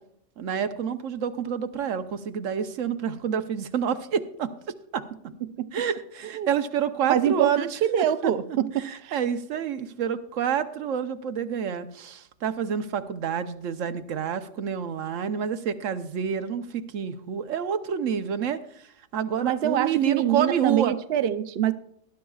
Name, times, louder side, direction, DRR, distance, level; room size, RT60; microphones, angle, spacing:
voice 1, 0.4-4.5 4.9-5.0 5.7-7.7 8.0-8.3 8.8-20.9, right 7 dB, 85° right, 1.2 m, -28 dB
voice 2, 7.1-9.2 19.4-21.7, right 11 dB, 60° right, 0.8 m, -25 dB
19.5 x 11.5 x 2.4 m
omnidirectional pair, 1.3 m